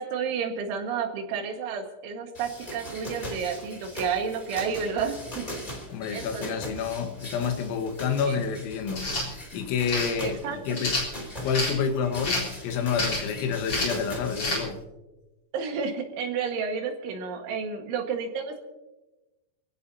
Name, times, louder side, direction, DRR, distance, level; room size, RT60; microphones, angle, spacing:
voice 1, 0.0-5.5 6.1-6.6 8.3-8.4 10.2-10.8 15.5-18.6, right 6 dB, 75° right, 3 dB, 4.1 m, -31 dB
sound 1, 2.3-14.5, equal, 15° left, 2.1 m, -40 dB
voice 2, 5.9-11.0 11.4-14.8, left 6 dB, 80° left, 5 dB, 3.7 m, -29 dB
sound 2, 8.9-9.3 9.9-10.1 10.7-11.7 12.2-12.5 12.9-13.3 13.7-14.0 14.4-14.6, left 2 dB, 30° left, 4.2 m, -28 dB
26.0 x 16.5 x 2.8 m, 1.1 s
omnidirectional pair, 5.5 m